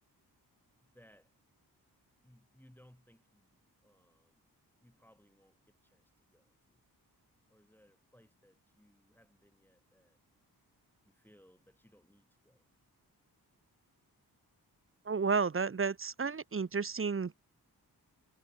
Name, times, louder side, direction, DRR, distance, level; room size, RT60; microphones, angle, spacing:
voice 1, 0.8-1.3 2.2-4.4 4.8-6.0 6.3-6.8 7.5-10.2 11.1-12.7, equal, 5° left, 7.0 m, -65 dB
voice 2, 15.1-17.4, right 5 dB, 35° right, 0.9 m, -32 dB
cardioid pair, 65°, 39 cm